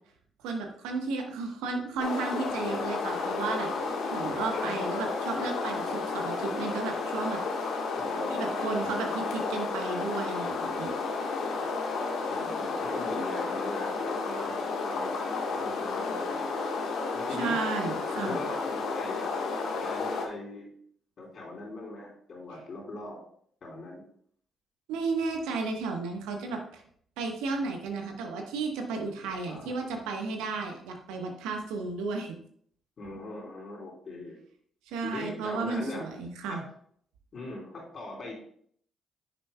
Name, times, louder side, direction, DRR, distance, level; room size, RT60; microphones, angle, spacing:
voice 1, 0.4-7.4 8.3-10.9 17.4-18.4 24.9-26.8 27.2-32.4 34.9-36.6, right 4 dB, 80° right, 3 dB, 1.1 m, -33 dB
sound 1, 2.0-20.3, left 4 dB, 75° left, 1.3 m, -32 dB
voice 2, 7.9-9.1 12.3-16.5 17.1-17.6 18.1-19.4 19.8-20.7 21.2-23.2 23.6-24.0 29.2-29.7 33.0-34.4 35.0-36.0 36.5-36.6 37.3-38.3, left 2 dB, 55° left, -2 dB, 3.2 m, -40 dB
9.5 x 6.8 x 2.2 m, 0.63 s
hypercardioid pair, 50°, 0 cm